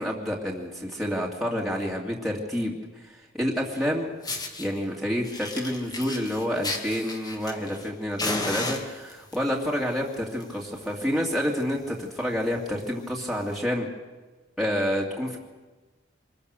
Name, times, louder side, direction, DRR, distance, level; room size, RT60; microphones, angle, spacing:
voice 1, 0.0-4.1 4.6-13.9 14.6-15.4, equal, ahead, -4 dB, 2.6 m, -28 dB
Fire, 3.8-3.9 4.2-4.7 5.2-7.9 8.2-9.4 10.2-10.4 10.7-10.8 11.2-11.3 11.6-11.8 12.4-12.5 13.4-13.5, left 2 dB, 20° left, 2.3 m, -33 dB
26.5 x 21.5 x 6.7 m, 1.3 s
head